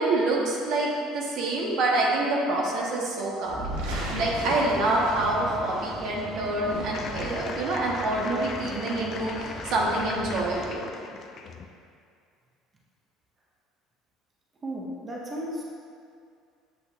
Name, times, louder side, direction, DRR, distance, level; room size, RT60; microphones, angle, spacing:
voice 1, 0.0-3.7 4.2-10.9, right 2 dB, 65° right, -2 dB, 1.2 m, -26 dB
sound 1, 3.4-6.0 6.5-7.7, right 1 dB, 85° right, 1.3 m, -35 dB
sound 2, 3.7-10.7, left 1 dB, 10° left, 0.8 m, -40 dB
sound 3, 6.9-11.6, left 5 dB, 50° left, 0.5 m, -39 dB
voice 2, 14.6-15.6, equal, 30° right, -2 dB, 1.0 m, -34 dB
8.3 x 6.3 x 2.5 m, 2.3 s
supercardioid pair, 90°, 0 cm